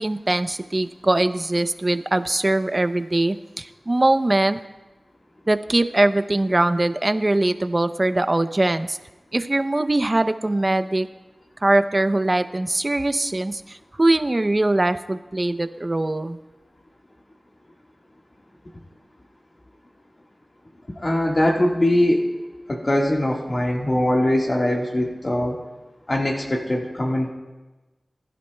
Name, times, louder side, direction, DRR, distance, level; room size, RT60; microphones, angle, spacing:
voice 1, 0.0-4.6 5.5-9.0 9.3-11.1 11.6-16.4, right 2 dB, 40° right, 11 dB, 0.6 m, -21 dB
voice 2, 21.0-22.2 22.7-25.6 26.1-27.3, left 1 dB, 45° left, -1 dB, 1.6 m, -21 dB
20.0 x 11.5 x 2.2 m, 1.1 s
cardioid pair, 40°, 0 cm